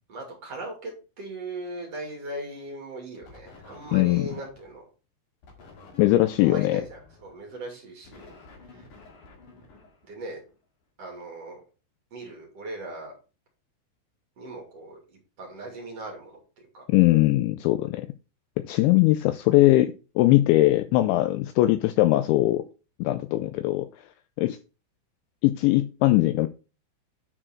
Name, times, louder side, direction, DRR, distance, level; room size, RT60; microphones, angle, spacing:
voice 1, 0.1-4.8 6.4-8.4 8.7-8.8 10.0-10.4 11.0-11.6 12.1-13.1 14.4-15.0 15.4-16.4 16.7-16.8, right 1 dB, 40° right, 2.7 m, -38 dB
sound 1, 3.2-4.8 5.4-10.6, left 3 dB, 50° left, 2.7 m, -51 dB
voice 2, 3.9-4.3 6.0-6.8 16.9-18.1 18.6-22.6 23.0-23.9 24.4-24.6 25.4-26.5, left 17 dB, 85° left, 2.6 m, -20 dB
10.0 x 4.5 x 4.4 m
omnidirectional pair, 5.8 m